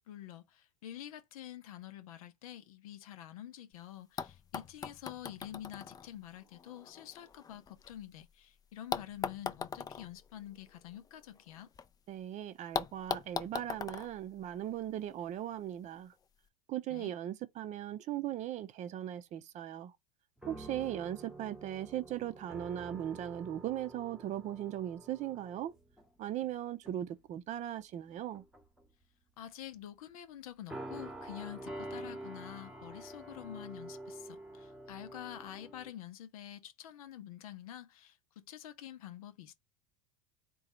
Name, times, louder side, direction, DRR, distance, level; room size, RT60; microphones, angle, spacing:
voice 1, 0.1-11.7 16.9-17.1 29.4-39.5, left 11 dB, 70° left, 0.7 m, -48 dB
sound 1, 3.7-3.8 4.2-8.3 8.9-11.9 12.1-12.2 12.7-15.1 16.1-16.2, left 6 dB, 20° left, 0.4 m, -41 dB
voice 2, 12.1-16.1 16.7-19.9 20.5-25.7 26.2-28.4, right 11 dB, 40° right, 0.6 m, -38 dB
sound 2, 20.4-26.5 26.8-27.1 28.1-28.8 30.7-35.9, right 1 dB, 5° right, 1.0 m, -47 dB
3.8 x 2.3 x 4.2 m
hypercardioid pair, 90°, 19 cm